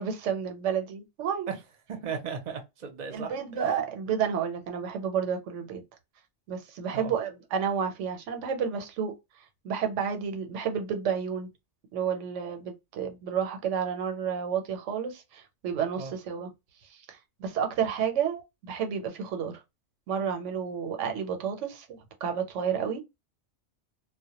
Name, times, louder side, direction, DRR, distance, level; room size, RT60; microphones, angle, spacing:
voice 1, 0.0-1.5 3.1-5.8 6.5-9.1 9.6-11.5 11.9-16.5 16.9-19.6 20.1-23.0, right 7 dB, 90° right, 0.9 m, -31 dB
voice 2, 1.9-3.3 6.9-7.1 16.0-16.1, right 6 dB, 50° right, 0.6 m, -35 dB
2.1 x 2.1 x 2.8 m
omnidirectional pair, 1.2 m